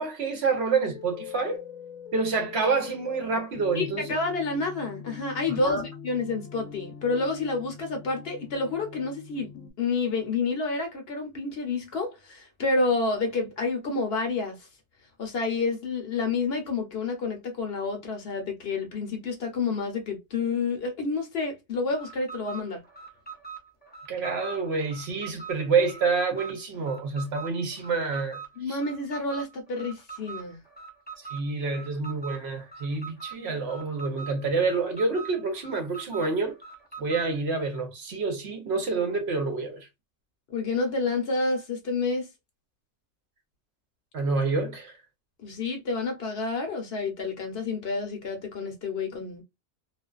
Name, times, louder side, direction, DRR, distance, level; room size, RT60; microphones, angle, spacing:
voice 1, 0.0-1.6 2.1-4.1 5.6-5.8 24.1-28.4 28.7-28.8 31.2-36.6 37.0-39.9 44.1-45.0, right 4 dB, 60° right, 0.8 m, -28 dB
sound 1, 0.9-9.7, left 7 dB, 90° left, 1.0 m, -43 dB
voice 2, 3.7-9.5 9.8-14.7 15.2-22.8 28.6-30.6 40.5-42.3 45.4-49.4, left 3 dB, 55° left, 0.8 m, -29 dB
Alarm, 21.9-37.3, right 6 dB, 10° left, 0.6 m, -43 dB
2.4 x 2.2 x 2.3 m
omnidirectional pair, 1.3 m